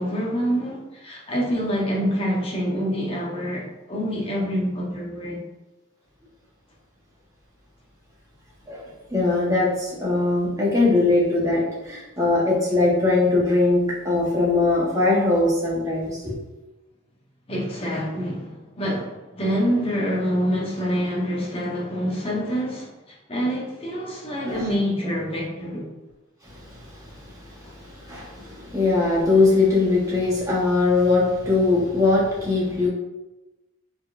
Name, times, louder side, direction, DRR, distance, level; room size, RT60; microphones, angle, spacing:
voice 1, 0.0-5.4 17.5-25.9, equal, 25° left, 1.0 m, -26 dB
voice 2, 9.1-16.4 24.4-24.6 26.5-32.9, left 3 dB, 15° right, 1.2 m, -21 dB
4.4 x 4.3 x 2.6 m
head